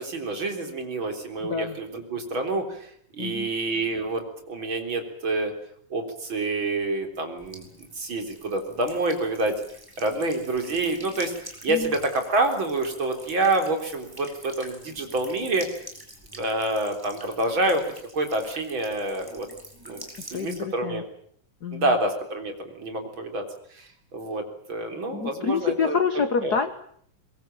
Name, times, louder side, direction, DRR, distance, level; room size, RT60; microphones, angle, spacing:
voice 1, 0.0-2.9 3.1-5.5 5.9-9.6 10.0-11.3 11.6-15.7 16.4-19.5 19.9-21.0 21.7-23.4 23.7-26.0 26.4-26.6, right 2 dB, 35° right, 4 dB, 4.3 m, -27 dB
voice 2, 1.4-1.8 3.2-3.5 11.7-11.9 20.3-21.0 21.6-21.9 25.1-26.7, left 6 dB, 65° left, 10 dB, 0.9 m, -27 dB
Buzz / Water tap faucet / Trickle dribble, 7.4-20.6, right 1 dB, 5° right, 4.9 m, -46 dB
22.5 x 22.5 x 8.9 m, 0.63 s
omnidirectional pair, 3.9 m